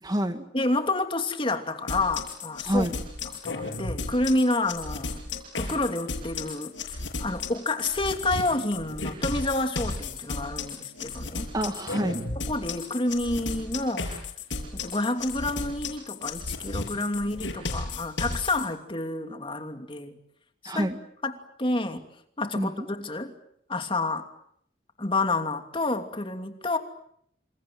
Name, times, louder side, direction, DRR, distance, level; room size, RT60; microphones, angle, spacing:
voice 1, 0.0-0.5 2.6-3.0 11.5-12.2 20.7-21.0 22.6-22.9, equal, 20° right, 8 dB, 1.9 m, -27 dB
voice 2, 0.5-2.9 3.4-5.2 5.5-11.5 12.5-14.1 14.7-20.2 20.6-20.9 21.2-22.0 22.4-23.3 23.7-24.3 25.0-26.8, left 2 dB, 30° left, 6 dB, 2.8 m, -29 dB
sound 1, 1.9-18.7, left 3 dB, 90° left, 6.8 m, -34 dB
28.0 x 27.5 x 7.6 m, 0.71 s
head